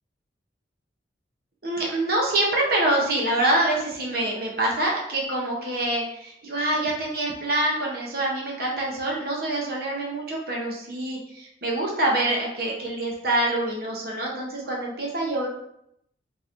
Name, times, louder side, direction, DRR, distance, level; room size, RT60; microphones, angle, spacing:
voice 1, 1.6-15.5, right 1 dB, 50° right, -2 dB, 0.7 m, -25 dB
3.8 x 3.0 x 2.5 m, 0.77 s
head